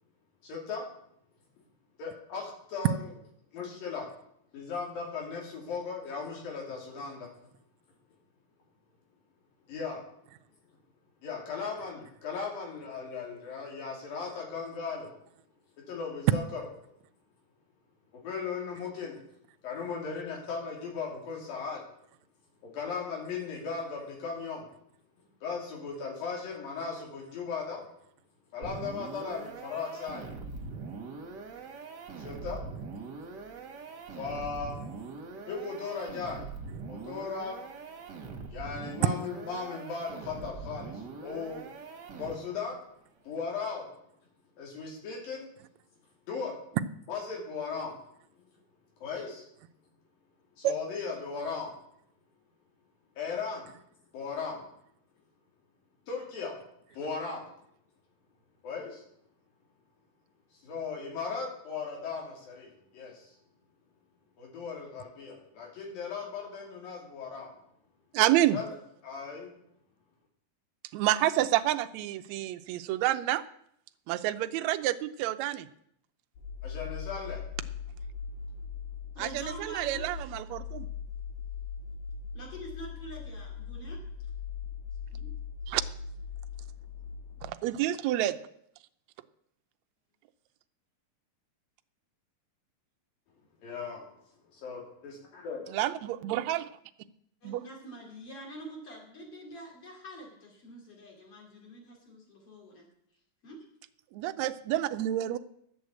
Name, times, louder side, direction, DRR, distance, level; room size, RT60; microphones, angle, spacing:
voice 1, 0.4-0.9 2.0-2.9 3.5-4.1 4.5-7.5 9.7-10.0 11.2-15.2 15.9-16.6 18.1-19.2 19.6-21.8 22.6-24.7 25.4-27.8 28.5-30.3 32.2-32.6 34.2-34.8 35.5-36.5 36.9-37.6 38.5-41.7 42.1-42.8 43.2-44.0 44.6-45.5 46.3-46.5 47.1-48.0 48.4-48.5 49.0-49.5 50.6-51.8 53.2-53.7 54.1-54.7 56.1-56.6 56.9-57.4 58.6-59.0 60.5-63.4 64.4-67.5 68.5-68.7 69.0-69.5 76.6-77.4 93.6-94.1 94.5-95.7, left 5 dB, 85° left, -1 dB, 4.5 m, -37 dB
sound 1, 28.6-42.7, right 4 dB, 50° right, 1.3 m, -42 dB
voice 2, 68.1-68.6 70.9-73.4 74.1-75.7 79.2-80.9 85.7-85.8 87.4-88.4 95.7-96.7 97.4-97.6 104.1-105.4, right 14 dB, 85° right, 8 dB, 1.6 m, -28 dB
sound 2, 76.4-87.5, left 6 dB, 70° left, 3.3 m, -40 dB
voice 3, 79.1-80.3 82.3-84.0 85.1-85.3 97.4-102.9 103.4-103.6, right 1 dB, 45° left, -1 dB, 3.7 m, -46 dB
11.5 x 7.9 x 8.2 m, 0.72 s
omnidirectional pair, 3.9 m